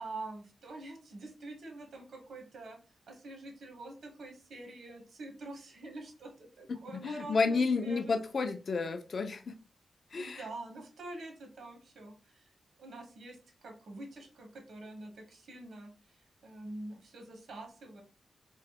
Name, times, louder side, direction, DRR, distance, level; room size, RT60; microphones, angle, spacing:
voice 1, 0.0-2.8 3.1-8.1 10.1-12.5 12.8-18.0, right 2 dB, 75° right, 3 dB, 0.8 m, -46 dB
voice 2, 6.9-9.6 10.1-10.4, left 4 dB, 50° left, 9 dB, 0.3 m, -31 dB
3.0 x 2.0 x 2.8 m, 0.36 s
wide cardioid pair, 155°, 0 cm